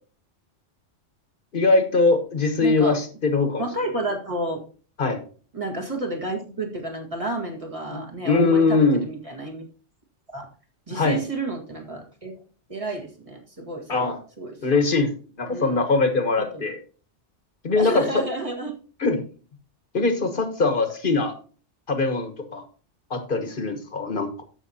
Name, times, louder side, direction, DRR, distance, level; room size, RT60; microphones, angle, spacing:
voice 1, 1.5-3.6 5.0-5.2 7.9-9.0 10.9-11.2 13.9-14.2 14.6-15.1 15.4-16.8 17.6-18.2 19.0-19.2 19.9-21.3 21.9-22.6 23.1-24.4, left 3 dB, 45° left, 7 dB, 1.4 m, -22 dB
voice 2, 2.6-3.0 3.6-4.6 5.5-9.7 10.3-10.5 10.9-12.3 12.7-14.6 15.5-15.8 16.4-16.6 17.8-18.7, right 2 dB, 30° right, 1 dB, 1.8 m, -31 dB
14.0 x 5.9 x 2.8 m, 0.38 s
omnidirectional pair, 1.2 m